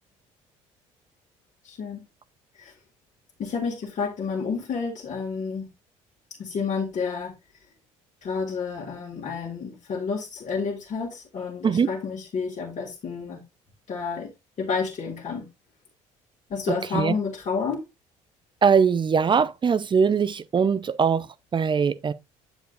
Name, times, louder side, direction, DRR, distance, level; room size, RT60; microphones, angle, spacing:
voice 1, 1.6-2.0 2.6-2.7 3.4-5.7 6.4-7.3 8.2-13.4 13.9-14.3 14.6-15.5 16.5-17.8, left 5 dB, 50° left, 2.0 m, -30 dB
voice 2, 16.7-17.1 18.6-21.3 21.5-22.1, right 6 dB, 30° right, 0.6 m, -21 dB
7.8 x 7.1 x 2.5 m
hypercardioid pair, 70°, 16 cm